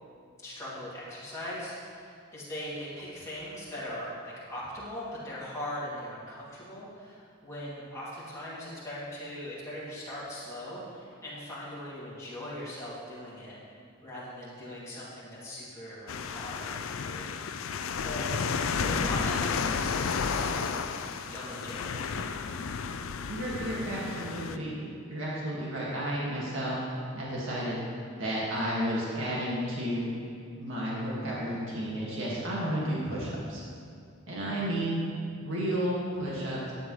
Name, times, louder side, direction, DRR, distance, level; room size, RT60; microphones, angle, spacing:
voice 1, 0.4-22.2 34.5-34.7, left 1 dB, 15° left, -9 dB, 2.4 m, -40 dB
sound 1, 16.1-24.6, left 5 dB, 75° left, 0.4 m, -32 dB
voice 2, 23.3-24.8 25.1-26.8 27.1-27.8 28.2-30.1 30.6-33.6 34.3-35.0 35.4-36.7, right 1 dB, 65° right, -6 dB, 1.9 m, -32 dB
11.5 x 8.6 x 3.1 m, 2.3 s
head